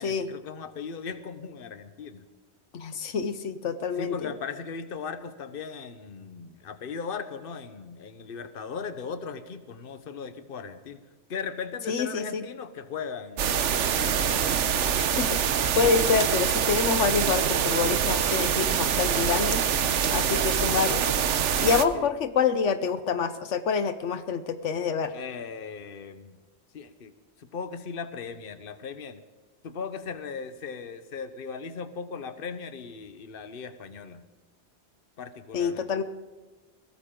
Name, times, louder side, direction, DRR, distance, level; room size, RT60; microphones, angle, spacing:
voice 1, 0.0-2.3 4.0-11.0 11.3-14.3 19.1-19.6 20.1-20.5 21.9-22.1 25.1-26.4 26.7-27.1 27.4-29.2 29.6-34.3 35.2-35.9, left 5 dB, 55° left, 10 dB, 1.2 m, -38 dB
voice 2, 2.7-4.1 11.9-12.4 15.0-15.3 15.7-19.6 20.1-21.1 21.6-25.1 35.5-36.0, left 6 dB, 85° left, 11 dB, 1.2 m, -27 dB
sound 1, 13.4-21.9, right 8 dB, 90° right, 1.1 m, -25 dB
21.0 x 17.5 x 3.8 m, 1.2 s
omnidirectional pair, 1.2 m